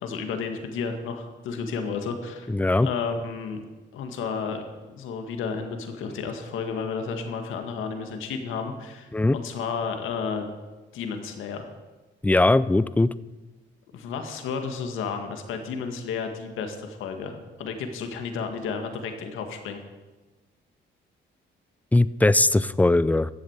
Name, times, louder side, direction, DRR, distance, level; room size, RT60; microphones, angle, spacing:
voice 1, 0.0-2.5 2.8-3.6 3.9-4.6 4.9-10.5 10.9-11.7 13.9-19.8, left 5 dB, 85° left, 5 dB, 2.0 m, -32 dB
voice 2, 2.5-2.9 9.1-9.4 12.2-13.1 21.9-23.3, left 2 dB, 10° left, 17 dB, 0.5 m, -20 dB
13.0 x 7.8 x 8.1 m, 1.2 s
cardioid pair, 90°, 20 cm